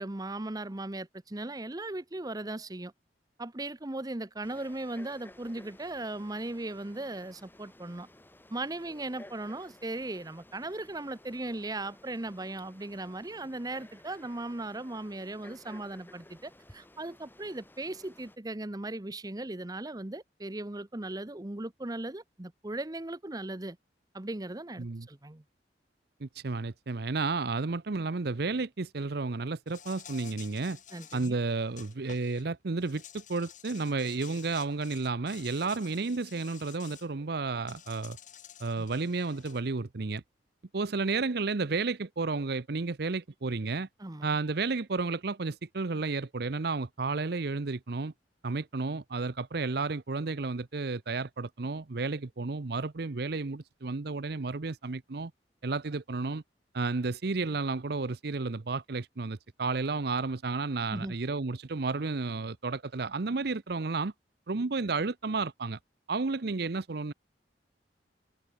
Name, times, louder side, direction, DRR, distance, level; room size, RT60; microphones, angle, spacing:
voice 1, 0.0-2.9 3.4-8.1 8.5-23.8 24.1-25.4 30.9-31.4 44.0-44.3 60.9-61.2, right 2 dB, 20° right, 0.9 m, -38 dB
Frog, 4.4-18.4, left 1 dB, 10° left, 2.1 m, -55 dB
voice 2, 26.2-30.8 31.1-38.2 38.6-40.2 40.7-43.9 44.2-48.1 48.4-55.3 55.6-56.4 56.7-64.1 64.5-65.8 66.1-67.1, right 3 dB, 60° right, 0.7 m, -32 dB
Insect, 29.7-32.4 32.8-37.1 37.7-39.6, left 9 dB, 45° left, 2.9 m, -51 dB
head